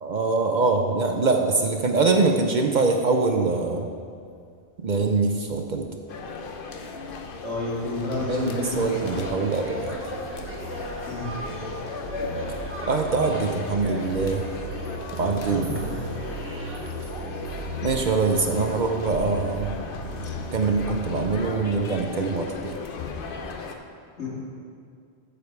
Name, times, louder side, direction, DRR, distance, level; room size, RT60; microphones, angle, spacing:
voice 1, 0.0-3.9 4.8-5.9 8.3-10.0 12.9-14.4 15.2-15.7 17.8-19.8 20.5-22.8, right 4 dB, 50° right, 4 dB, 0.6 m, -23 dB
sound 1, 4.4-4.5 5.0-21.3, equal, 75° right, 1.5 m, -38 dB
sound 2, 6.1-23.7, left 4 dB, 55° left, 0.8 m, -38 dB
voice 2, 7.4-9.1 11.1-11.3 15.4-16.0 24.2-24.3, left 2 dB, 85° left, -6 dB, 2.5 m, -30 dB
sound 3, 8.1-16.8, equal, 10° right, 1.1 m, -37 dB
14.0 x 5.0 x 4.7 m, 2.3 s
omnidirectional pair, 1.1 m